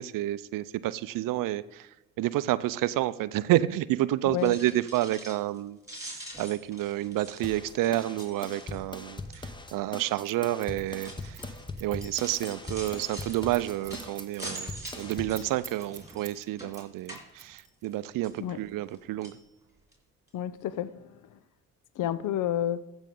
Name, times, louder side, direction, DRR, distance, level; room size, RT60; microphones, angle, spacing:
voice 1, 0.0-1.9 2.2-11.4 11.8-19.4, right 15 dB, 60° right, 16 dB, 0.5 m, -29 dB
voice 2, 4.3-4.6 18.4-18.6 20.3-21.4 22.0-22.8, left 11 dB, 55° left, 17 dB, 0.7 m, -31 dB
sound 1, 4.3-5.6 5.8-9.0 9.3-9.7 10.4-17.9 18.2-19.0 19.2-19.4 19.9-20.0 20.3-20.4, right 1 dB, 10° right, 3.3 m, -45 dB
sound 2, 7.4-15.4, left 2 dB, 10° left, 1.0 m, -41 dB
Scissors, 10.2-16.4 16.7-18.0, right 8 dB, 40° right, 1.3 m, -46 dB
15.0 x 5.3 x 3.7 m, 0.96 s
hypercardioid pair, 55°, 37 cm